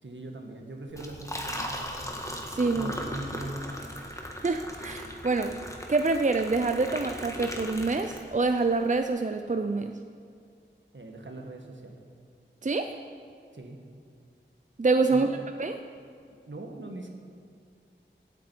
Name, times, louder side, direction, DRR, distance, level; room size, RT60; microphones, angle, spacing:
voice 1, 0.0-2.1 2.7-3.8 10.9-12.0 13.5-13.8 15.1-15.3 16.5-17.1, right 1 dB, 70° right, 2 dB, 1.5 m, -40 dB
Liquid, 0.9-8.6, equal, 15° left, 1.5 m, -38 dB
voice 2, 2.5-2.9 4.4-5.6 5.9-9.9 12.6-13.0 14.8-15.3 15.6-15.8, right 3 dB, 40° right, 7 dB, 0.5 m, -26 dB
17.0 x 8.3 x 4.6 m, 2.2 s
wide cardioid pair, 40°, 20 cm